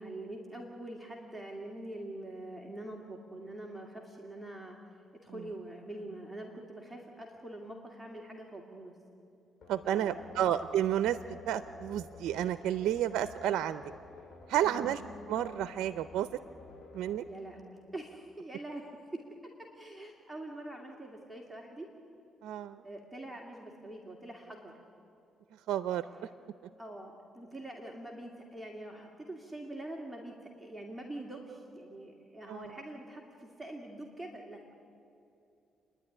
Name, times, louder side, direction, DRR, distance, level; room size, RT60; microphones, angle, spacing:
voice 1, 0.0-4.8 5.2-8.9 9.8-10.3 14.6-15.0 17.3-19.2 19.6-21.9 22.8-24.7 26.8-34.6, right 1 dB, 5° right, 0 dB, 2.4 m, -44 dB
sound 1, 9.6-18.3, left 3 dB, 55° left, 7.3 m, -52 dB
voice 2, 9.7-13.8 14.5-15.0 15.3-16.3 16.9-17.2 22.4-22.8 25.7-26.0 32.5-32.7, right 11 dB, 85° right, 13 dB, 0.5 m, -31 dB
29.0 x 11.0 x 9.9 m, 2.7 s
cardioid pair, 90°, 0 cm